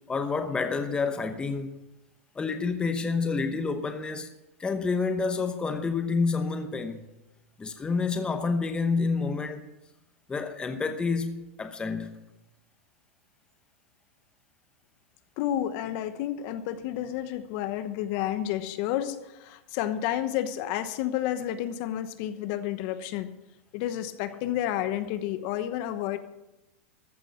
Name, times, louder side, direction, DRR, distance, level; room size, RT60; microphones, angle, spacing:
voice 1, 0.1-1.7 2.3-4.3 4.6-7.1 7.6-9.6 10.3-12.1, left 4 dB, 10° left, 0.9 m, -28 dB
voice 2, 15.4-23.3 23.7-26.2, left 12 dB, 50° left, 1.0 m, -30 dB
14.5 x 6.0 x 8.1 m
hypercardioid pair, 130°, 7 cm